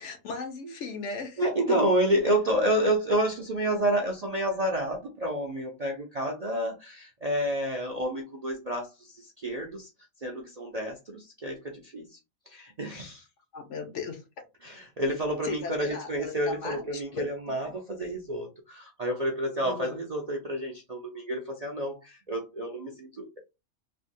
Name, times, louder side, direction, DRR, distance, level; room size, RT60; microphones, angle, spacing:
voice 1, 0.0-1.8 2.3-2.4 13.5-14.2 15.4-17.3 17.6-17.7 19.6-20.0, left 5 dB, 65° left, 1.0 m, -37 dB
voice 2, 1.4-9.9 10.2-12.2 12.5-13.2 14.6-23.4, right 1 dB, 45° right, 0.5 m, -29 dB
3.4 x 2.2 x 2.6 m
omnidirectional pair, 1.5 m